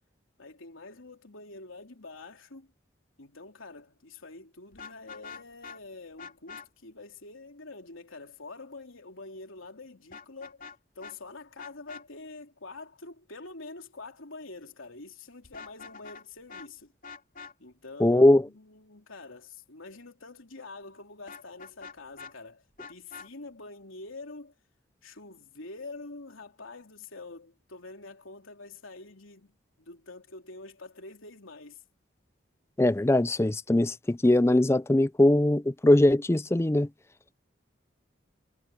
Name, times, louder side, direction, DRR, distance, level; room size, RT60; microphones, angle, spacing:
voice 1, 0.4-2.7 3.2-10.6 11.0-16.9 17.6-24.5 25.0-31.8, left 3 dB, 90° left, 3.5 m, -46 dB
Vehicle horn car horn honking, 4.7-5.8 6.2-6.7 10.1-10.8 11.0-11.1 11.6-12.0 15.4-16.2 16.5-16.7 17.0-17.5 21.3-22.3 22.8-23.3, left 5 dB, 45° left, 3.5 m, -44 dB
voice 2, 18.0-18.4 32.8-36.9, left 1 dB, 15° left, 0.4 m, -21 dB
head